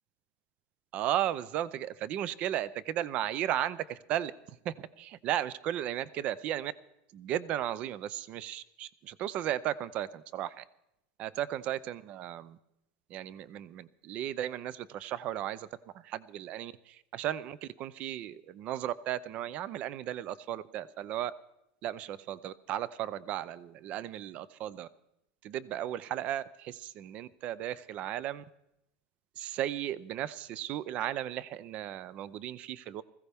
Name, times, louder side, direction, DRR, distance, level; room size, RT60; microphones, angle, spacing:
voice 1, 0.9-6.7 7.1-10.6 11.2-12.6 13.1-15.7 15.9-21.3 21.8-24.9 25.4-28.4 29.4-33.0, right 12 dB, 35° right, 19 dB, 0.5 m, -35 dB
20.5 x 15.5 x 3.5 m, 0.84 s
supercardioid pair, 165°, 4 cm